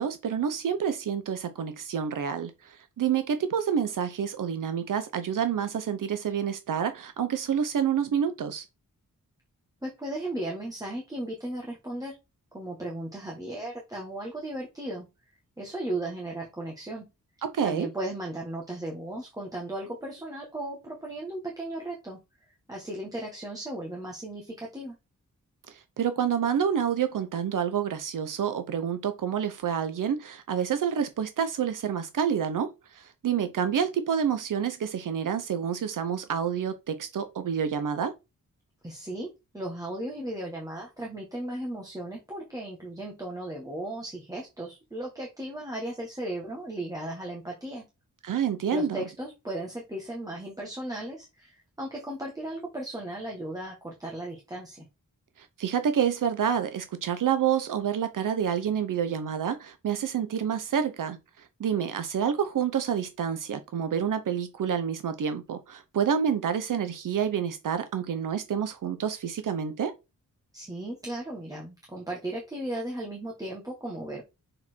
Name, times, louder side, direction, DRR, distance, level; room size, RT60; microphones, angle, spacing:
voice 1, 0.0-8.6 17.4-17.9 25.7-38.1 48.2-49.0 55.4-69.9, right 8 dB, 75° right, 0.7 m, -28 dB
voice 2, 9.8-12.2 12.5-15.0 15.6-17.1 17.6-22.2 22.7-24.9 38.8-47.8 48.7-54.8 70.5-74.2, right 1 dB, 10° right, 1.5 m, -36 dB
6.4 x 4.4 x 4.4 m
wide cardioid pair, 170°, 32 cm